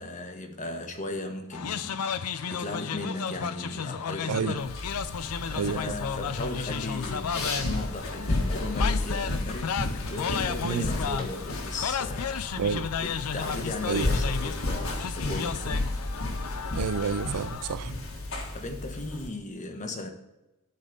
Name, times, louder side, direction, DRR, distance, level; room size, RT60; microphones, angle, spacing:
voice 1, 0.0-2.1 2.5-4.7 4.9-9.8 10.1-12.6 13.0-15.7 18.5-20.1, left 2 dB, 35° left, 1.2 m, -37 dB
sound 1, 1.5-17.8, left 7 dB, 80° left, 0.5 m, -33 dB
sound 2, 4.6-19.3, left 2 dB, 65° left, 1.6 m, -32 dB
voice 2, 5.6-6.0 10.6-10.9 12.6-12.9 13.9-14.0 16.7-17.9, right 6 dB, 85° right, 0.5 m, -29 dB
12.0 x 4.2 x 5.3 m
head